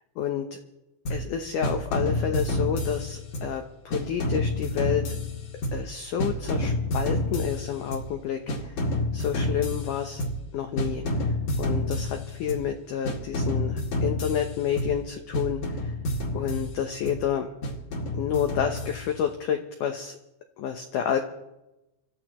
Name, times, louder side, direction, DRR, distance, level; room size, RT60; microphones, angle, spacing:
voice 1, 0.2-0.6 1.1-5.0 5.7-8.8 9.1-10.2 10.5-11.0 11.6-15.9 16.3-17.5 18.1-20.2 20.6-21.2, left 8 dB, 80° left, 5 dB, 1.8 m, -29 dB
sound 1, 1.1-1.3 1.6-3.6 3.9-5.9 6.2-8.1 8.5-10.5 10.8-12.7 13.1-15.1 15.3-17.2 17.6-19.3, left 1 dB, 45° left, 2.5 m, -29 dB
27.5 x 13.5 x 3.0 m, 0.94 s
omnidirectional pair, 4.8 m